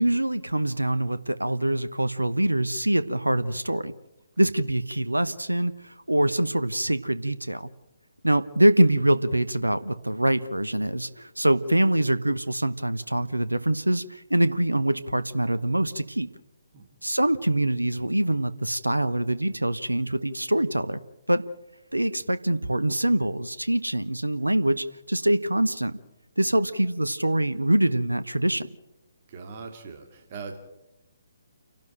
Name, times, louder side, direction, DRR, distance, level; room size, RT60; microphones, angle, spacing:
voice 1, 0.0-3.9 4.4-7.7 8.2-16.3 17.0-21.0 21.3-21.4 21.9-26.0 26.4-28.7, right 1 dB, 80° right, 14 dB, 1.1 m, -24 dB
voice 2, 29.3-30.6, right 4 dB, 35° right, 4 dB, 2.6 m, -40 dB
29.0 x 12.0 x 8.9 m, 0.93 s
figure-of-eight pair, 135°, 0 cm